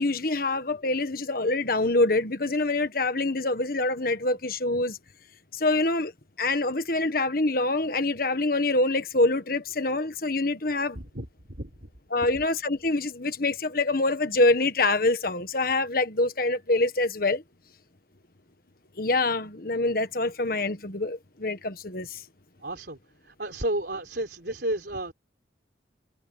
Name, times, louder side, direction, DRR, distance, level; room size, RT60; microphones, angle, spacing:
voice 1, 0.0-5.0 5.5-6.1 6.4-11.0 12.1-17.4 19.0-22.2, left 2 dB, 50° left, 1.5 m, -25 dB
voice 2, 10.9-11.7 22.6-23.0 23.2-25.1, right 1 dB, 60° right, 4.0 m, -32 dB
head